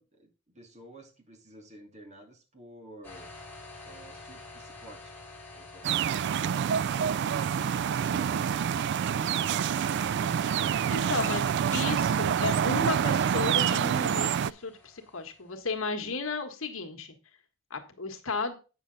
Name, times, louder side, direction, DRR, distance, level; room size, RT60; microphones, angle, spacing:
voice 1, 0.0-3.3 3.9-5.1 5.5-8.4 16.0-16.2, right 1 dB, 35° right, 2 dB, 2.3 m, -51 dB
sound 1, 3.0-15.6, left 3 dB, 10° left, 2.1 m, -49 dB
sound 2, 5.8-14.5, right 8 dB, 55° right, 0.3 m, -27 dB
voice 2, 10.9-11.4 11.7-17.1 17.7-18.6, left 3 dB, 70° left, 5 dB, 1.5 m, -34 dB
8.7 x 6.8 x 3.9 m, 0.32 s
head